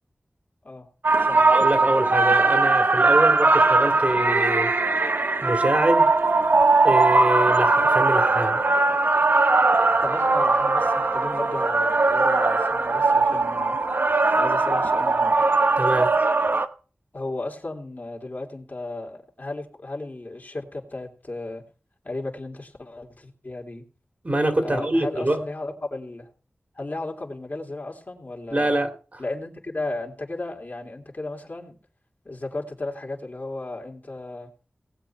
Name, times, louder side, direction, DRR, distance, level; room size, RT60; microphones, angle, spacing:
sound 1, 1.0-16.7, right 3 dB, 55° right, 0.9 m, -20 dB
voice 1, 1.5-4.7 5.4-6.1 6.8-8.6 15.8-16.1 24.2-25.4 28.5-29.2, right 1 dB, 40° right, 5 dB, 2.3 m, -25 dB
voice 2, 10.0-13.8 14.3-15.4 17.1-21.6 22.0-23.8 24.6-26.3 26.7-28.7 29.2-31.7 32.2-34.5, left 2 dB, 50° left, 0 dB, 2.9 m, -34 dB
19.0 x 7.9 x 4.5 m, 0.39 s
wide cardioid pair, 55°, 4 cm